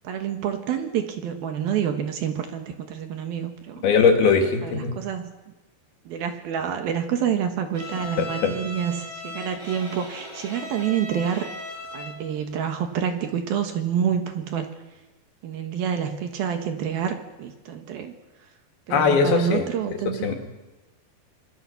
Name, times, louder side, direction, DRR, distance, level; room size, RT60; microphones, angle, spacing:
voice 1, 0.0-3.9 4.6-5.3 6.1-11.5 11.9-14.7 15.4-18.1 18.9-20.4, right 8 dB, 65° right, 6 dB, 3.0 m, -28 dB
voice 2, 3.8-4.9 8.2-8.5 18.9-19.7 20.2-20.4, left 5 dB, 60° left, 3 dB, 4.1 m, -20 dB
Bowed string instrument, 7.7-12.3, left 2 dB, 10° left, 5.5 m, -37 dB
26.0 x 22.0 x 7.1 m, 1.1 s
omnidirectional pair, 5.1 m